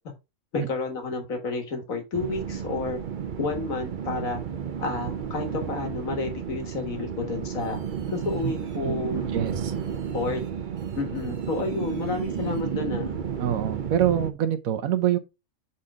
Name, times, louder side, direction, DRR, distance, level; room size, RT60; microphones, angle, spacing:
voice 1, 0.5-3.0 3.4-4.4 4.8-7.8 8.1-9.3 10.1-10.4 11.0-13.2, left 3 dB, 75° left, 2.0 m, -30 dB
sound 1, 2.1-14.3, right 7 dB, 50° right, 0.6 m, -32 dB
voice 2, 9.3-9.7 13.4-15.2, right 10 dB, 80° right, 1.2 m, -25 dB
6.5 x 4.3 x 3.6 m
omnidirectional pair, 1.4 m